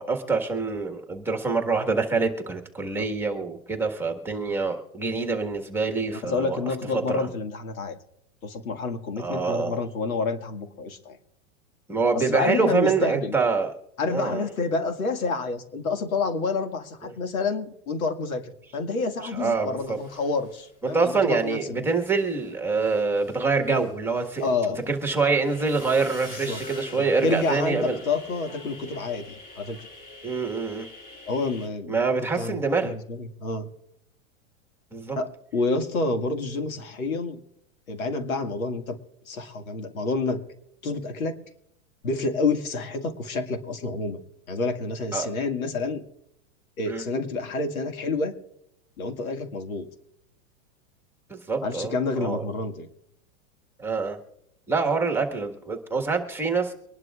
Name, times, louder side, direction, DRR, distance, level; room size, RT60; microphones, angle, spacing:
voice 1, 0.0-6.6 6.9-7.3 9.2-9.8 11.9-13.7 14.1-14.4 17.0-17.2 19.3-20.0 20.8-24.5 24.9-28.0 30.2-30.9 31.9-32.9 34.9-35.2 45.1-45.3 46.9-47.0 51.3-52.4 53.8-54.2 54.7-56.7, right 4 dB, 5° right, 4 dB, 1.6 m, -25 dB
voice 2, 6.2-8.0 8.4-11.2 12.1-13.3 14.0-18.4 18.7-21.8 24.4-24.9 26.4-26.6 27.2-29.9 31.3-32.0 32.4-33.7 35.2-37.4 37.9-39.0 39.3-40.4 40.8-41.4 42.0-44.2 44.5-46.0 46.8-48.4 49.0-49.9 51.6-52.9, left 3 dB, 90° left, 5 dB, 2.1 m, -28 dB
sound 1, 19.8-21.7 21.9-31.7, left 2 dB, 20° left, 6.3 m, -45 dB
24.5 x 11.5 x 2.4 m, 0.79 s
supercardioid pair, 140°, 41 cm